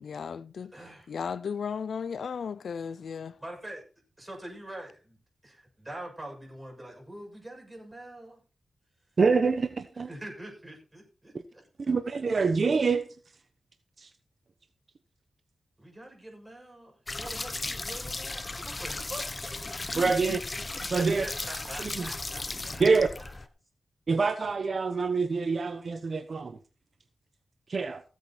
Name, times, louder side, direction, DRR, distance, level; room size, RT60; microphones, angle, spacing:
voice 1, 0.0-0.7 1.1-3.3, left 6 dB, 80° left, 0.5 m, -35 dB
voice 2, 0.7-1.1 3.4-3.8 4.2-5.2 5.4-8.4 10.1-11.9 15.8-19.6 20.9-22.8 23.1-23.3, right 1 dB, 15° right, 7.1 m, -44 dB
voice 3, 9.2-10.1 11.3-11.4 11.9-13.0 14.0-14.1 19.9-20.4 20.9-21.2 21.8-22.1 22.8-23.1 24.1-26.6 27.7-28.0, right 4 dB, 55° right, 1.0 m, -26 dB
sound 1, 17.1-23.5, left 2 dB, 30° left, 0.9 m, -36 dB
16.0 x 8.3 x 4.3 m
wide cardioid pair, 90°, 0 cm